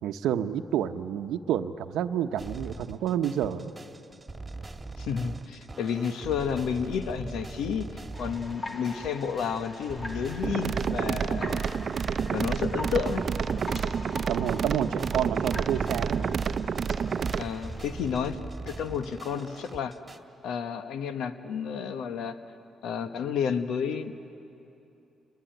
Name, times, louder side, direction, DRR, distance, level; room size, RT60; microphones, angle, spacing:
voice 1, 0.0-3.7 14.3-16.4, right 10 dB, 85° right, 9 dB, 0.9 m, -29 dB
sound 1, 2.4-20.2, right 3 dB, 15° right, 1.8 m, -42 dB
voice 2, 5.0-7.9 8.2-11.6 12.3-13.2 17.4-18.4 18.7-20.0 20.4-22.4 22.8-24.1, left 7 dB, 80° left, 9 dB, 1.1 m, -31 dB
sound 2, 8.1-17.8, left 1 dB, 35° left, 2.2 m, -43 dB
sound 3, 10.4-17.4, right 6 dB, 50° right, 0.7 m, -29 dB
29.0 x 20.5 x 9.2 m, 2.8 s
cardioid pair, 90°, 0 cm